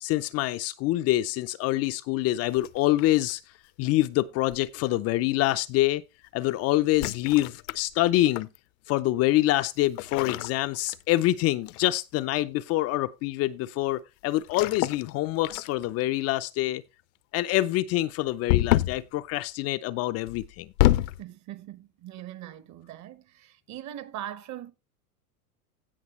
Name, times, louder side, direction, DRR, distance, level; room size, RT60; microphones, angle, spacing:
voice 1, 0.0-3.4 3.8-6.0 6.3-8.5 8.9-16.8 17.3-20.7, left 16 dB, 35° left, 0.5 m, -26 dB
sound 1, 2.5-3.3 4.5-4.8 6.9-8.6 10.0-11.3 11.7-12.0 14.4-15.1 15.4-16.0 18.5-19.1 20.3-21.2, left 16 dB, 65° left, 0.7 m, -27 dB
voice 2, 21.2-24.7, right 12 dB, 35° right, 1.1 m, -41 dB
16.0 x 5.8 x 3.1 m
hypercardioid pair, 110°, 46 cm